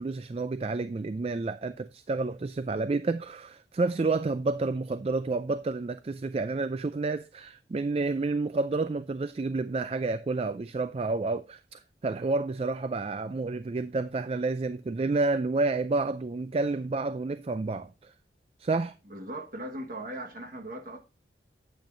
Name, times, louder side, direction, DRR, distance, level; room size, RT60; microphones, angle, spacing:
voice 1, 0.0-18.1 18.6-18.9, right 3 dB, 35° right, 0.3 m, -30 dB
voice 2, 19.0-21.0, right 1 dB, 50° right, 1.4 m, -38 dB
9.1 x 8.4 x 2.6 m
head